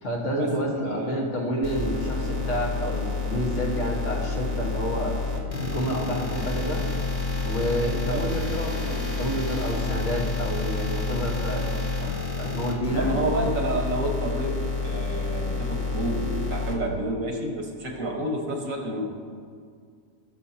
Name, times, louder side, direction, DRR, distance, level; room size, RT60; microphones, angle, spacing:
voice 1, 0.0-5.1 5.5-6.8 7.4-11.7 12.0-13.1, equal, 65° left, -2 dB, 1.8 m, -29 dB
voice 2, 0.8-1.3 6.3-6.4 8.1-8.3 12.4-12.5 12.9-19.0, right 1 dB, 85° right, 1 dB, 1.9 m, -29 dB
sound 1, 1.6-16.7, left 3 dB, 35° left, 1.4 m, -29 dB
19.0 x 6.6 x 2.9 m, 2.1 s
omnidirectional pair, 1.4 m